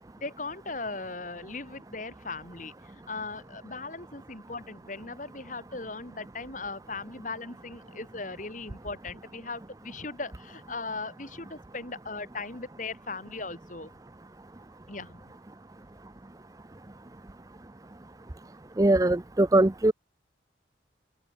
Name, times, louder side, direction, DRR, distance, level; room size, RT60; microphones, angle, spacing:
voice 1, 0.2-13.9 14.9-15.2, left 3 dB, 45° left, 3.5 m, -38 dB
voice 2, 18.8-19.9, right 1 dB, 20° right, 0.5 m, -21 dB
open air
head